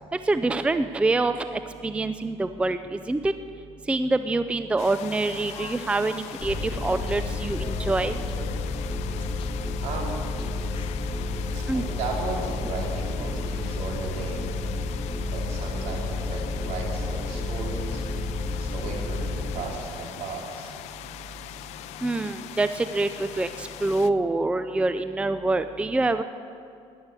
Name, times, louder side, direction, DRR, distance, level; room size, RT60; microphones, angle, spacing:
voice 1, 0.3-3.3 3.9-8.2 11.7-11.8 22.0-26.2, right 2 dB, 10° right, 10 dB, 0.5 m, -25 dB
sound 1, 4.8-24.1, left 14 dB, 75° left, 0.6 m, -41 dB
sound 2, 5.2-12.6, left 8 dB, 50° left, 1.0 m, -48 dB
sound 3, 6.4-19.6, left 2 dB, 10° left, 1.9 m, -31 dB
voice 2, 9.8-10.3 11.5-14.5 15.3-18.0 18.6-20.8, right 3 dB, 70° right, -1 dB, 4.0 m, -35 dB
15.5 x 11.0 x 8.4 m, 2.4 s
cardioid pair, 120°, 11 cm